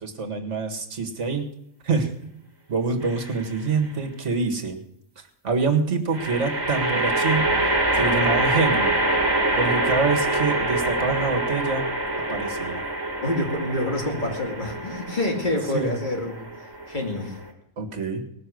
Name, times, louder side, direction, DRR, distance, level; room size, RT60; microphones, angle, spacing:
voice 1, 0.0-1.5 1.8-2.1 2.7-4.8 5.4-7.6 7.9-9.0 9.5-11.9 12.3-12.8 15.7-15.9 17.8-18.2, right 4 dB, 60° right, 5 dB, 2.1 m, -26 dB
sound 1, 3.0-3.6 6.1-17.5, right 2 dB, 15° right, 2.1 m, -25 dB
voice 2, 13.2-17.4, left 1 dB, 35° left, 2 dB, 2.6 m, -27 dB
19.0 x 6.9 x 7.8 m, 0.73 s
omnidirectional pair, 1.4 m